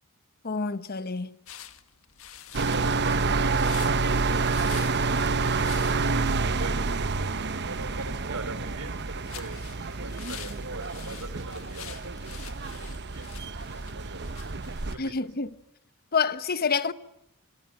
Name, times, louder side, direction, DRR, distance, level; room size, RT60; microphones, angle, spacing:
voice 1, 0.4-1.3 15.0-15.5 16.1-16.9, left 5 dB, 45° left, 1.0 m, -27 dB
sound 1, 1.5-15.7, left 10 dB, 65° left, 1.9 m, -47 dB
sound 2, 2.5-15.0, right 4 dB, 50° right, 1.0 m, -28 dB
voice 2, 2.5-3.7 6.5-14.6 14.9-15.3, right 2 dB, 75° right, 3.7 m, -42 dB
26.0 x 22.5 x 9.0 m
head